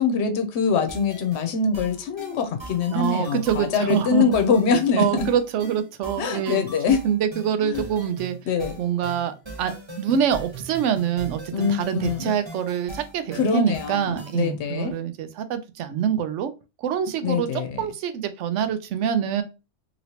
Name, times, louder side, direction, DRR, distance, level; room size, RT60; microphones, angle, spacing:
voice 1, 0.0-5.3 6.2-7.0 7.6-7.9 8.5-8.8 11.5-12.3 13.3-15.0 17.2-17.8, left 5 dB, 70° left, 6 dB, 0.9 m, -23 dB
sound 1, 0.9-14.5, right 2 dB, 25° right, 1.2 m, -40 dB
voice 2, 2.9-4.4 5.0-6.6 7.0-8.4 8.8-16.5 16.8-19.4, right 8 dB, 80° right, 10 dB, 0.9 m, -25 dB
3.0 x 2.9 x 2.8 m, 0.28 s
omnidirectional pair, 1.2 m